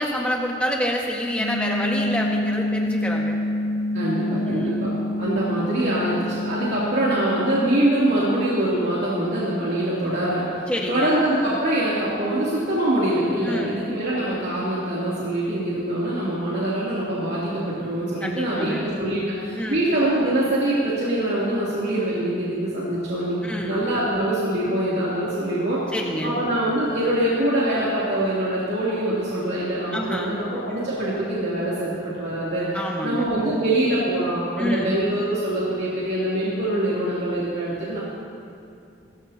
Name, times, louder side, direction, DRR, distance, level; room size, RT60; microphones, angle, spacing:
voice 1, 0.0-3.3 4.5-4.7 10.7-11.1 13.4-13.7 18.2-18.8 19.5-19.8 23.4-23.8 25.9-26.3 29.9-30.4 32.7-33.2 34.6-34.9, equal, 5° left, -2 dB, 1.6 m, -27 dB
sound 1, 1.4-7.8, left 1 dB, 45° left, 2.3 m, -27 dB
voice 2, 3.9-4.9 5.2-25.8 26.2-38.0, right 1 dB, 65° right, -9 dB, 3.0 m, -24 dB
27.5 x 15.0 x 2.9 m, 2.5 s
head